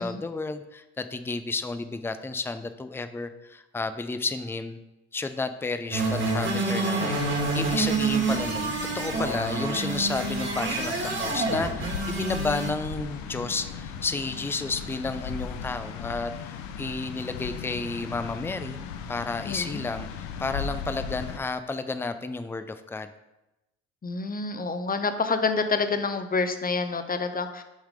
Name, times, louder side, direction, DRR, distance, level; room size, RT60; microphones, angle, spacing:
voice 1, 0.0-4.8 5.1-18.8 19.1-23.1, left 3 dB, 5° left, 10 dB, 0.5 m, -32 dB
sound 1, 5.9-12.7, right 3 dB, 30° right, 1.9 m, -28 dB
sound 2, 7.1-21.4, left 6 dB, 80° left, 0.7 m, -37 dB
voice 2, 19.4-19.8 24.0-27.6, left 4 dB, 25° left, 9 dB, 0.8 m, -28 dB
6.5 x 4.8 x 5.0 m, 0.95 s
hypercardioid pair, 55°, 38 cm